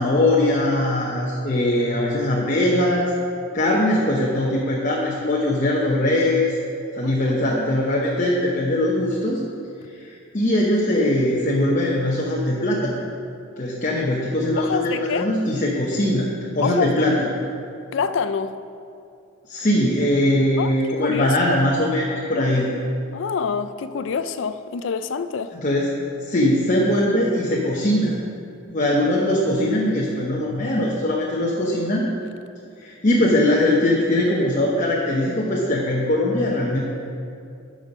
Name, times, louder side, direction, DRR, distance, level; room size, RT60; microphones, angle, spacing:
voice 1, 0.0-3.1 3.5-6.6 6.9-9.4 9.9-12.9 13.6-16.3 16.5-17.3 19.5-22.7 25.5-25.9 26.2-28.2 28.7-32.1 32.8-36.8, left 1 dB, 35° left, 0.8 m, -21 dB
voice 2, 7.0-7.4 14.6-15.3 16.6-17.1 17.9-18.6 20.6-21.4 23.1-25.5, left 6 dB, 65° left, 0.4 m, -26 dB
9.0 x 6.4 x 5.4 m
head